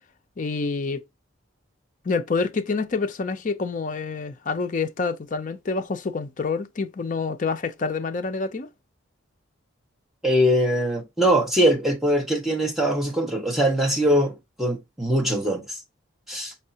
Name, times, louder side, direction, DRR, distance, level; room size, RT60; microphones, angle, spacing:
voice 1, 0.4-1.0 2.0-8.7, left 4 dB, 40° left, 0.4 m, -27 dB
voice 2, 10.2-15.8 16.3-16.5, equal, ahead, 0.9 m, -22 dB
5.4 x 3.3 x 2.8 m
head